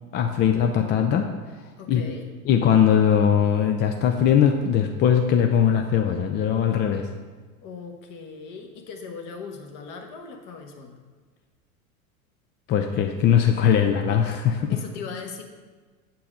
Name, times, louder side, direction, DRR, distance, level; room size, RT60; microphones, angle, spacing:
voice 1, 0.1-1.3 1.9-2.0 2.5-7.1 12.7-14.7, left 8 dB, 25° left, 4 dB, 0.4 m, -20 dB
voice 2, 1.8-2.3 7.6-11.0 14.4-15.4, left 5 dB, 45° left, 3 dB, 1.3 m, -39 dB
7.4 x 4.6 x 5.1 m, 1.4 s
hypercardioid pair, 95°, 43 cm